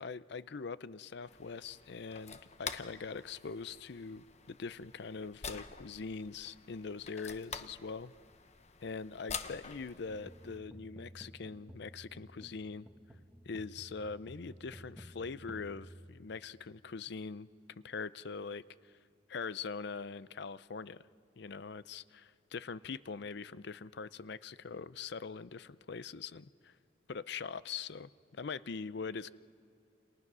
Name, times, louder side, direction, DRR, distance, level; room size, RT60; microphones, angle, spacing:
voice 1, 0.0-8.1 8.8-12.9 13.5-17.5 17.8-18.9 19.3-21.0 21.4-26.7 27.1-29.3, left 5 dB, 65° left, 16 dB, 0.5 m, -42 dB
sound 1, 1.3-10.6, left 6 dB, 40° left, 0.9 m, -47 dB
sound 2, 10.1-16.7, equal, 5° right, 1.3 m, -54 dB
29.0 x 29.0 x 6.2 m, 2.4 s
head